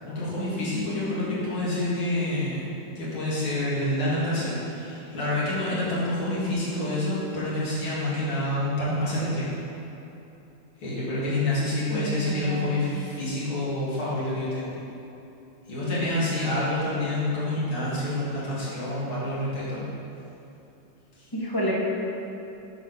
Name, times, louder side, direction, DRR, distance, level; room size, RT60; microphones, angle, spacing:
voice 1, 0.0-2.7 3.0-9.6 10.8-14.8 15.7-19.8, left 1 dB, 85° left, -9 dB, 2.7 m, -27 dB
voice 2, 11.9-12.7 21.3-21.7, equal, 25° left, -5 dB, 0.5 m, -29 dB
7.7 x 3.8 x 5.8 m, 2.9 s
omnidirectional pair, 2.2 m